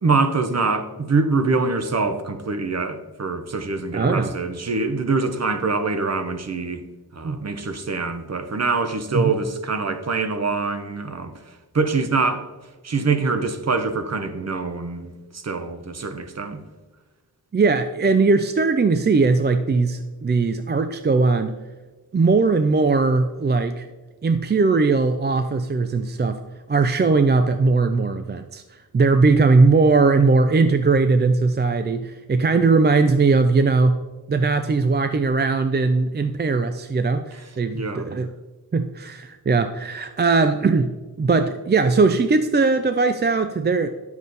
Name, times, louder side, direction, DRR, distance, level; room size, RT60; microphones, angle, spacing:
voice 1, 0.0-6.8 7.1-11.3 11.7-12.5 12.8-16.6 37.7-38.1, right 4 dB, 45° right, 0.8 m, -24 dB
voice 2, 3.9-4.3 7.2-7.4 9.1-9.3 17.5-21.6 22.1-23.9 24.2-26.4 26.7-28.6 28.9-34.0 34.3-38.3 38.7-40.9 41.2-43.9, right 4 dB, 30° right, 0.4 m, -19 dB
10.0 x 7.2 x 4.0 m
wide cardioid pair, 110°, 37 cm